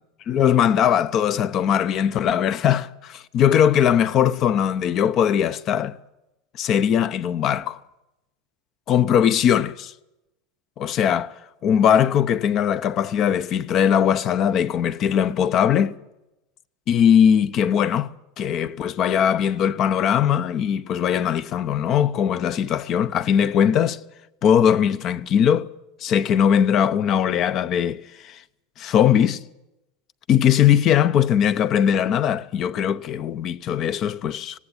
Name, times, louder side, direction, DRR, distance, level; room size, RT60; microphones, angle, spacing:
voice 1, 0.3-6.0 6.6-7.8 8.9-9.9 10.8-16.0 16.9-24.0 24.4-25.7 26.0-28.4 28.8-29.4 30.3-34.6, left 9 dB, 35° left, 0.8 m, -20 dB
18.5 x 17.5 x 8.7 m
supercardioid pair, 150°, 0 cm